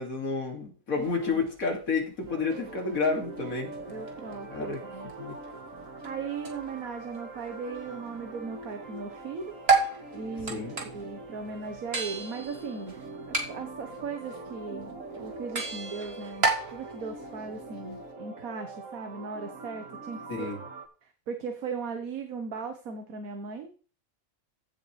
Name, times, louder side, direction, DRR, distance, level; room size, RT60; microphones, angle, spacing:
voice 1, 0.0-3.7 4.5-4.8 5.2-5.4 10.5-10.7 20.3-20.6, left 4 dB, 85° left, 2 dB, 2.8 m, -30 dB
sound 1, 0.9-8.7 9.0-18.1, right 4 dB, 50° right, 1.9 m, -34 dB
voice 2, 1.0-1.4 3.9-5.1 6.0-9.5 10.1-13.0 13.3-20.3 21.0-23.7, right 5 dB, 85° right, 6 dB, 1.6 m, -38 dB
sound 2, 2.3-20.9, right 2 dB, 65° right, 1.9 m, -43 dB
15.0 x 7.0 x 3.2 m, 0.38 s
omnidirectional pair, 1.4 m